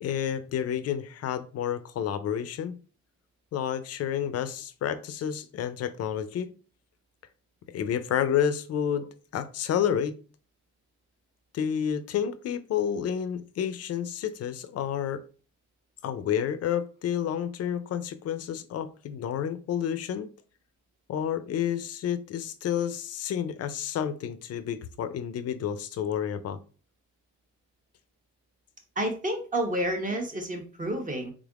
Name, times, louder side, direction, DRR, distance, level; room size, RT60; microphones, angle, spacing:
voice 1, 0.0-2.8 3.5-6.5 7.7-10.2 11.5-15.2 16.0-20.3 21.1-26.6, left 9 dB, 55° left, 0.5 m, -30 dB
voice 2, 29.0-31.3, right 1 dB, 25° right, 1.0 m, -30 dB
3.6 x 3.4 x 2.4 m
cardioid pair, 90°, 30 cm